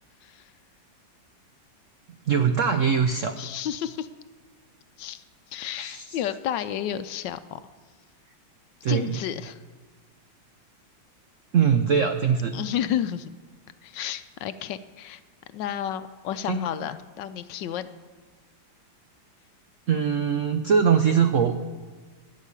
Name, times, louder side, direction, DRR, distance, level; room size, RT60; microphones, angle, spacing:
voice 1, 0.2-0.5 3.4-4.1 5.0-7.6 8.9-9.6 12.5-13.3 13.8-15.2 15.5-17.9, left 10 dB, 75° left, 12 dB, 1.2 m, -31 dB
voice 2, 2.3-3.4 5.8-6.0 8.8-9.2 11.5-12.6 16.5-16.6 19.9-21.5, right 7 dB, 80° right, 8 dB, 0.6 m, -22 dB
12.5 x 6.5 x 9.8 m, 1.4 s
omnidirectional pair, 2.1 m